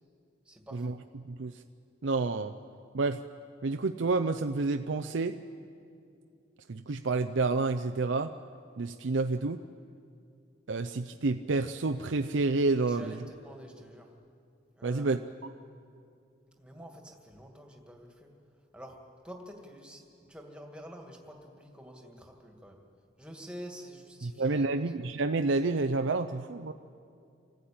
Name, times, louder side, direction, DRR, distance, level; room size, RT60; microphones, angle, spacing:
voice 1, 0.4-1.0 12.9-14.1 14.8-15.2 16.6-18.3 18.7-19.0 19.2-22.8 23.2-24.9, equal, 5° right, 1 dB, 2.2 m, -48 dB
voice 2, 1.2-1.6 2.0-2.5 2.9-3.2 3.6-5.4 6.7-8.3 8.8-9.6 10.7-13.2 14.8-15.2 24.2-26.7, right 3 dB, 80° right, 8 dB, 0.6 m, -29 dB
26.0 x 14.5 x 8.8 m, 2.4 s
head